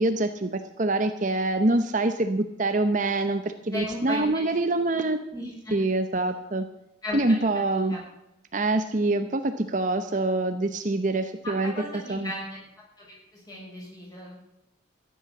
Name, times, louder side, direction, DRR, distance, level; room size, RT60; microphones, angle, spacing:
voice 1, 0.0-5.2 5.7-6.7 7.1-8.0 8.5-11.7 12.1-12.3, right 2 dB, 40° right, 8 dB, 0.8 m, -25 dB
voice 2, 3.7-4.8 5.3-5.7 7.0-7.4 7.7-8.0 11.4-12.6 13.0-14.4, left 1 dB, 20° left, -4 dB, 6.7 m, -36 dB
14.0 x 11.0 x 7.1 m, 0.86 s
head